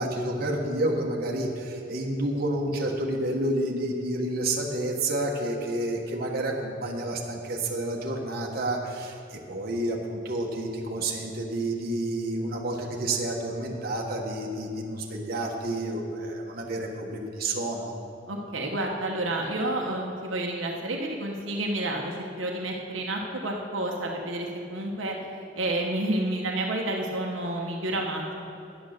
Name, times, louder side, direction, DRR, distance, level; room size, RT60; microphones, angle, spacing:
voice 1, 0.0-17.9, right 1 dB, 50° right, 0 dB, 1.5 m, -29 dB
voice 2, 18.3-25.2 25.5-28.4, right 1 dB, 85° right, 0 dB, 1.3 m, -30 dB
10.0 x 8.5 x 6.6 m, 2.5 s
head